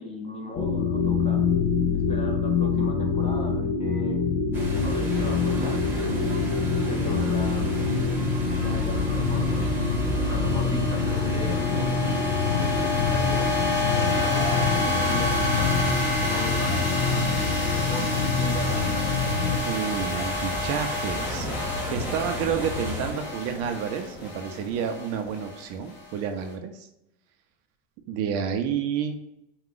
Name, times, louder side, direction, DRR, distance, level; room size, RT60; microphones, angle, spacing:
voice 1, 0.0-1.5 2.1-4.2 4.8-6.2 6.9-7.8 8.6-9.9 10.2-11.8 12.4-13.5 13.9-17.4 17.6-19.1, left 1 dB, 20° left, 1 dB, 0.8 m, -38 dB
sound 1, 0.6-19.6, left 5 dB, 55° left, 0.7 m, -25 dB
sound 2, 4.5-23.1, equal, 5° right, 1.0 m, -33 dB
sound 3, 8.1-26.4, left 3 dB, 35° left, 1.3 m, -30 dB
voice 2, 19.6-26.9 28.1-29.2, right 7 dB, 50° right, 6 dB, 0.6 m, -30 dB
4.7 x 2.3 x 3.8 m, 0.83 s
cardioid pair, 145°, 31 cm